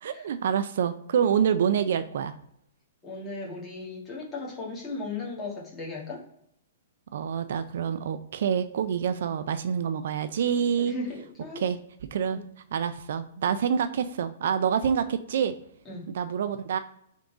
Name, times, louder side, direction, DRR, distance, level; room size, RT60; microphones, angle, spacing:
voice 1, 0.0-2.3 7.1-10.9 11.6-11.8 12.1-12.4 12.7-15.5 16.1-16.8, right 8 dB, 65° right, 11 dB, 0.3 m, -27 dB
voice 2, 3.0-6.2 9.8-9.9 10.8-11.6 12.3-12.4 15.8-16.0, left 3 dB, 10° left, -5 dB, 1.5 m, -36 dB
3.7 x 3.5 x 3.9 m, 0.73 s
hypercardioid pair, 155°, 0 cm